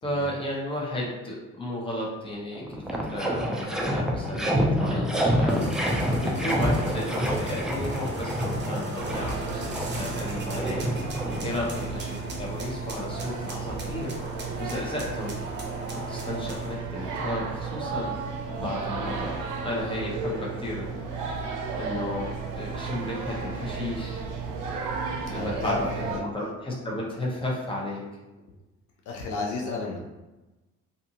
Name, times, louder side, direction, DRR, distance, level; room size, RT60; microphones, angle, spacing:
voice 1, 0.0-5.6 6.2-10.9 11.4-14.1 14.6-15.3 16.1-18.2 18.5-19.3 19.6-21.0 21.7-24.3 25.2-28.0, left 1 dB, 15° left, -4 dB, 0.9 m, -33 dB
sound 1, 2.2-2.3 2.5-12.0, equal, ahead, 0.4 m, -27 dB
sound 2, 5.5-16.7, right 1 dB, 35° right, 0.7 m, -39 dB
sound 3, 9.0-26.2, right 5 dB, 85° right, 0.5 m, -34 dB
voice 2, 25.3-26.2 29.1-30.0, left 3 dB, 75° left, 0 dB, 0.5 m, -33 dB
2.6 x 2.5 x 2.7 m, 1.1 s
cardioid pair, 90°, 30 cm